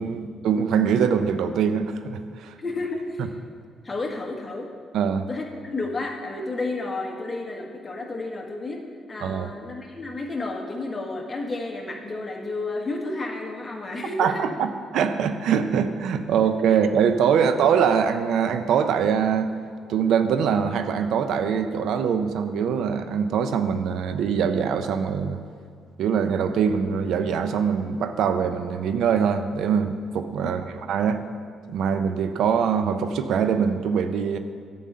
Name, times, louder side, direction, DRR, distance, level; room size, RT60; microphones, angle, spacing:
voice 1, 0.0-2.5 4.9-5.2 9.2-9.5 14.2-19.5 19.9-25.4 26.0-31.2 31.7-34.4, right 7 dB, 80° right, 9 dB, 0.6 m, -23 dB
voice 2, 2.6-3.3 3.8-4.7 5.3-8.8 9.1-14.4 17.4-17.5 30.4-30.7, left 2 dB, 25° left, 1 dB, 1.6 m, -31 dB
10.5 x 5.5 x 7.5 m, 2.1 s
cardioid pair, 90°, 0 cm